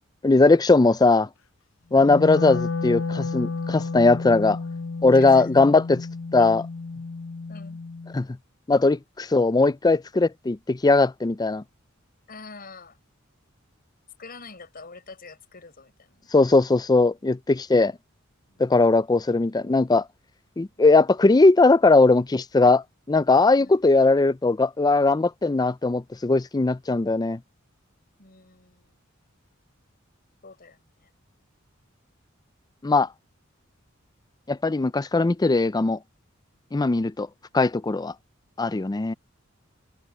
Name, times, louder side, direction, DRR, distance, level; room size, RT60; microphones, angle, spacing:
voice 1, 0.2-1.3 1.9-4.6 5.0-6.0 6.3-6.6 8.1-8.3 8.7-11.6 16.3-17.9 18.6-20.0 20.6-27.4 32.8-33.1 34.5-36.0 36.7-37.3 37.5-38.1 38.6-39.1, left 3 dB, 20° left, 0.4 m, -19 dB
Wind instrument woodwind instrument, 1.9-8.2, left 4 dB, 75° left, 0.8 m, -31 dB
voice 2, 5.1-5.5 6.4-6.7 7.5-7.8 12.3-13.0 14.2-16.3 18.5-18.9 20.8-20.9 23.6-23.8 28.2-29.0 30.4-31.1, left 4 dB, 45° left, 5.4 m, -46 dB
head